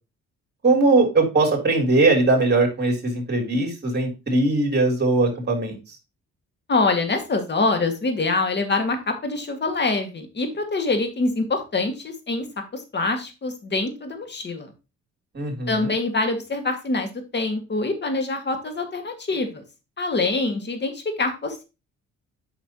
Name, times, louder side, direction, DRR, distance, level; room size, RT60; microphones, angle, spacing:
voice 1, 0.6-5.8 15.3-15.9, right 2 dB, 35° right, 1 dB, 3.5 m, -20 dB
voice 2, 6.7-12.4 12.7-14.7 15.7-19.6 20.0-21.6, left 3 dB, 35° left, 6 dB, 1.9 m, -25 dB
8.8 x 5.8 x 3.0 m, 0.28 s
cardioid pair, 90°, 30 cm